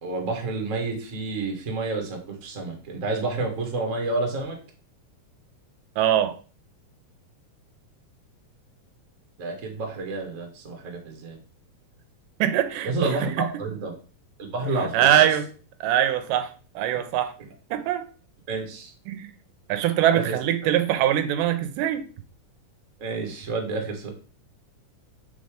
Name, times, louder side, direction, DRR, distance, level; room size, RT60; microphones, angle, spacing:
voice 1, 0.0-4.6 9.4-11.4 12.8-13.9 14.4-15.3 18.5-18.9 20.1-20.3 23.0-24.1, right 3 dB, 50° right, 0.9 m, -29 dB
voice 2, 6.0-6.4 12.4-13.2 14.9-15.5 15.8-16.5 16.8-17.3 17.7-18.1 19.1-19.3 19.7-22.1, right 11 dB, 85° right, 2.2 m, -22 dB
5.3 x 3.9 x 5.0 m
omnidirectional pair, 3.8 m